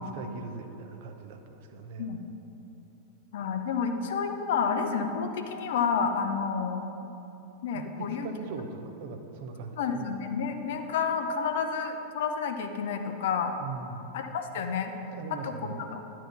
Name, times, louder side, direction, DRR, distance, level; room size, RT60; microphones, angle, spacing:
voice 1, 0.0-2.2 7.7-10.1 13.6-14.0 15.1-15.8, right 4 dB, 50° right, 5 dB, 0.8 m, -40 dB
voice 2, 3.3-6.8 7.6-8.3 9.8-13.6 14.1-14.9 15.3-16.0, left 6 dB, 55° left, 6 dB, 0.7 m, -30 dB
10.5 x 4.6 x 6.0 m, 2.9 s
figure-of-eight pair, 90°, 0 cm